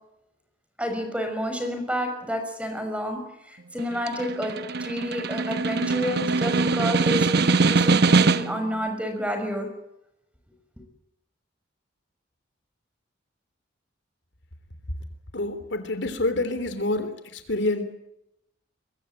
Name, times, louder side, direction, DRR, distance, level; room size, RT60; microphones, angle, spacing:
voice 1, 0.8-3.2 3.5-4.5 4.8-9.7, equal, 5° right, 6 dB, 6.0 m, -29 dB
Snare drum, 3.8-8.7, right 4 dB, 55° right, 0.9 m, -22 dB
voice 2, 15.3-17.8, left 2 dB, 60° left, 10 dB, 3.1 m, -27 dB
24.0 x 23.0 x 9.0 m, 0.82 s
head